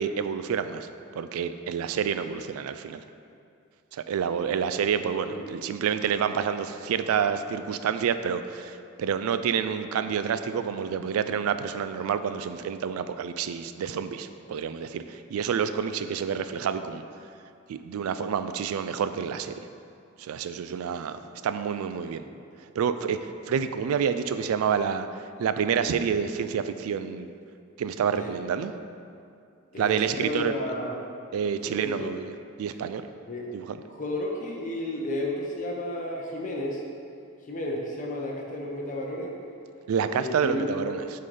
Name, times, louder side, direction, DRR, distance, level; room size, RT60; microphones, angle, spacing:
voice 1, 0.0-3.0 3.9-17.0 17.7-19.6 20.2-22.2 22.8-25.1 25.4-27.3 27.8-28.7 29.8-30.5 31.3-32.3 32.6-33.0 33.5-33.8 39.9-41.0, right 7 dB, 75° right, 11 dB, 0.3 m, -28 dB
voice 2, 29.7-31.0 31.6-32.1 32.7-32.8 33.3-33.5 33.9-36.8 37.5-39.3 40.1-40.9, left 1 dB, 35° left, -2 dB, 0.7 m, -33 dB
7.8 x 3.8 x 3.3 m, 2.4 s
head